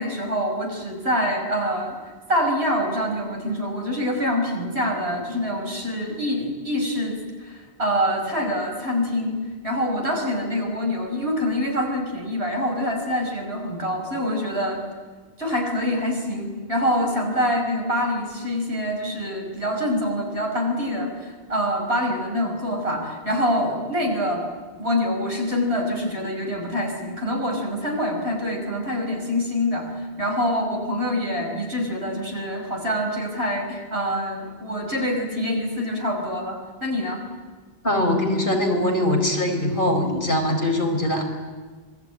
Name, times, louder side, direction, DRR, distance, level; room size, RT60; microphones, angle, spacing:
voice 1, 0.0-2.0 2.3-14.8 15.4-24.5 24.8-37.2, equal, 80° right, 2 dB, 5.7 m, -25 dB
voice 2, 37.8-41.2, left 1 dB, 55° left, 2 dB, 4.9 m, -22 dB
26.0 x 20.5 x 9.0 m, 1.4 s
omnidirectional pair, 1.1 m